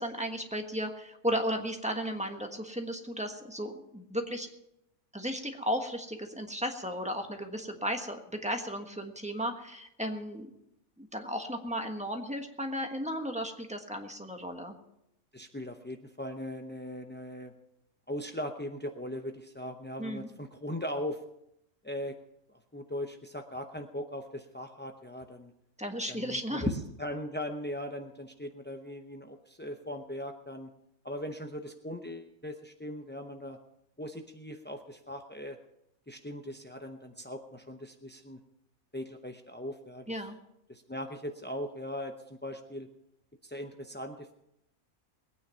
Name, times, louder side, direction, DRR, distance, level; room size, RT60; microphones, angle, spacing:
voice 1, 0.0-4.5 5.1-10.5 11.0-14.8 20.0-20.3 25.8-26.6 40.1-40.4, equal, 5° right, 3 dB, 1.3 m, -35 dB
voice 2, 15.3-17.5 18.1-21.2 21.8-22.2 22.5-25.5 26.1-26.7 27.0-30.7 31.0-33.6 34.0-35.6 36.1-38.4 38.9-40.3 40.7-42.9 43.4-44.3, left 1 dB, 15° left, 4 dB, 0.3 m, -39 dB
20.0 x 9.4 x 5.6 m, 0.82 s
omnidirectional pair, 1.5 m